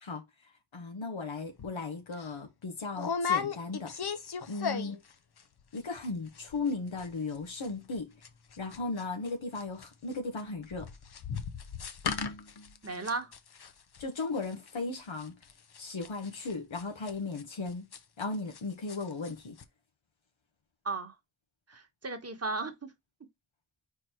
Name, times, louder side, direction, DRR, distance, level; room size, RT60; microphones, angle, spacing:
voice 1, 0.7-3.9 4.5-5.0 5.7-8.1 8.6-10.9 14.0-15.3 15.8-17.8 18.2-19.6, left 3 dB, 75° left, 1.7 m, -36 dB
sound 1, 1.6-1.7 2.1-2.3 2.9-5.1 5.4-5.8 6.0-6.1 6.3-6.7 7.0-9.3 9.5-18.6 18.9-19.3 19.6-19.7, left 6 dB, 55° left, 0.9 m, -36 dB
voice 2, 12.8-13.3 20.8-21.1 21.7-22.9, right 3 dB, 30° right, 1.3 m, -35 dB
4.7 x 4.5 x 4.4 m
wide cardioid pair, 80°, 46 cm